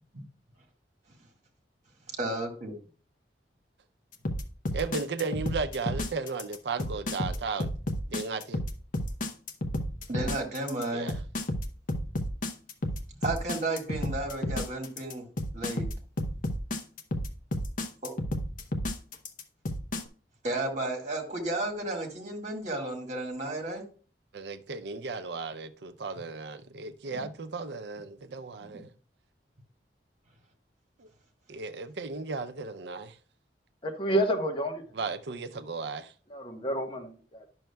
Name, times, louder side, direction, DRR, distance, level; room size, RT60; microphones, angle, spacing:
voice 1, 2.2-2.7 10.1-11.1 13.1-15.3 15.5-15.9 18.0-18.1 20.4-23.8 27.1-27.2 28.7-28.8, right 2 dB, 45° right, 1.7 m, -33 dB
sound 1, 4.2-20.0, left 1 dB, 50° left, 0.8 m, -31 dB
voice 2, 4.7-7.7 8.1-8.6 10.9-11.2 24.3-28.9 31.0-31.1 31.5-33.2 35.0-36.1, right 4 dB, 70° right, 0.6 m, -35 dB
voice 3, 33.8-34.8 36.3-37.5, right 1 dB, 30° left, 1.2 m, -29 dB
10.5 x 6.3 x 2.2 m
head